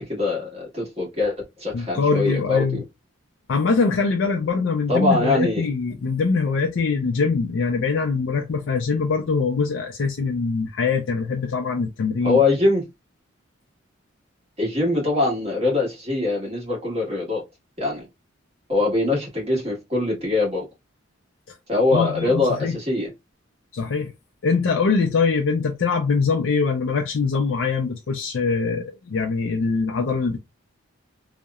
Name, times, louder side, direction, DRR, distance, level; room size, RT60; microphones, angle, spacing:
voice 1, 0.0-2.8 4.9-5.7 12.2-12.8 14.6-17.4 17.8-18.1 18.7-20.7 21.7-23.1, left 2 dB, 30° right, 1.3 m, -23 dB
voice 2, 1.7-2.8 3.5-12.4 21.5-21.6 21.9-22.8 23.7-24.1 24.4-30.4, left 4 dB, 70° left, 0.4 m, -23 dB
2.8 x 2.1 x 2.3 m
head